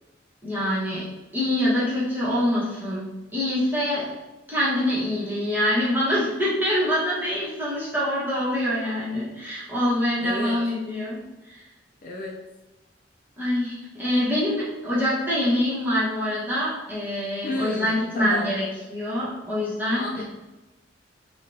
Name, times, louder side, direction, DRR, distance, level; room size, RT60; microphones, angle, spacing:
voice 1, 0.4-1.1 1.3-4.1 4.5-11.2 11.5-11.6 13.4-20.2, left 1 dB, 10° right, -8 dB, 1.2 m, -25 dB
voice 2, 10.2-10.6 12.0-12.5 17.4-18.5 19.9-20.2, left 2 dB, 45° left, 0 dB, 0.4 m, -32 dB
5.1 x 2.4 x 2.7 m, 1.1 s
head